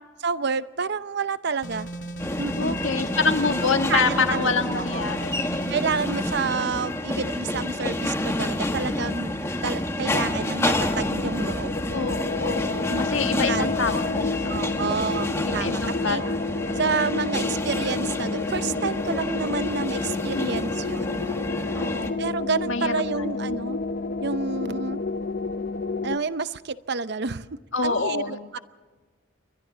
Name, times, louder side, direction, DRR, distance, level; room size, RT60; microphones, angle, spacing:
voice 1, 0.2-1.9 2.4-2.8 3.9-5.0 5.7-9.3 9.6-12.1 12.9-13.1 13.3-13.7 14.5-15.8 16.0-16.2 16.8-21.2 22.2-23.8 24.2-25.0 26.0-27.5 27.8-28.6, right 4 dB, 60° right, 14 dB, 0.7 m, -29 dB
sound 1, 1.6-6.5, right 2 dB, 70° left, 2.1 m, -36 dB
sound 2, 2.2-22.1, left 1 dB, 15° left, 1.4 m, -29 dB
voice 2, 2.5-5.8 11.9-14.9 15.4-16.2 16.6-16.7 20.1-20.6 21.7-22.2 22.7-23.6 27.7-28.6, left 4 dB, 90° left, 6 dB, 1.7 m, -27 dB
sound 3, 10.7-26.2, left 3 dB, 50° left, 0.6 m, -30 dB
28.5 x 23.0 x 4.0 m, 1.3 s
head